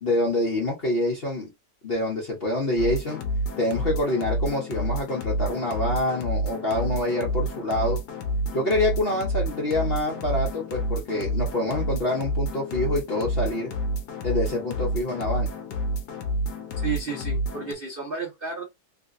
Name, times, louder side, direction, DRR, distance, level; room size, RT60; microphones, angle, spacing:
voice 1, 0.0-1.5 1.8-3.2 3.6-8.0 8.5-13.7 14.2-15.5, left 1 dB, 45° left, 0.8 m, -26 dB
sound 1, 2.8-17.7, equal, 65° left, 1.1 m, -29 dB
voice 2, 16.8-18.6, right 5 dB, 70° right, 0.5 m, -32 dB
3.2 x 2.8 x 2.5 m
omnidirectional pair, 2.1 m